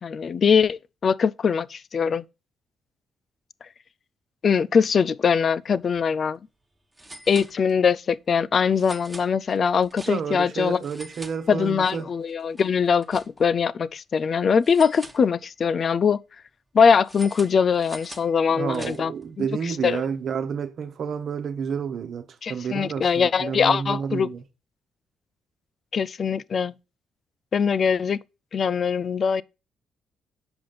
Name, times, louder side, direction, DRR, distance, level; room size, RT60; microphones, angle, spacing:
voice 1, 0.0-2.2 4.4-6.4 7.3-10.8 11.5-16.2 16.7-19.1 19.4-19.5 19.8-20.0 22.4-24.3 25.9-26.7 27.5-28.2 28.5-29.4, left 6 dB, 50° left, 0.4 m, -22 dB
sound 1, 5.8-6.0 6.3-6.4 6.9-8.0 8.7-10.5 10.8-11.9 12.3-13.7 14.6-15.7 17.0-19.3, right 1 dB, 10° right, 1.3 m, -44 dB
voice 2, 10.1-12.1 18.5-24.4, right 6 dB, 60° right, 1.1 m, -30 dB
6.9 x 5.2 x 5.6 m
cardioid pair, 90°, 0 cm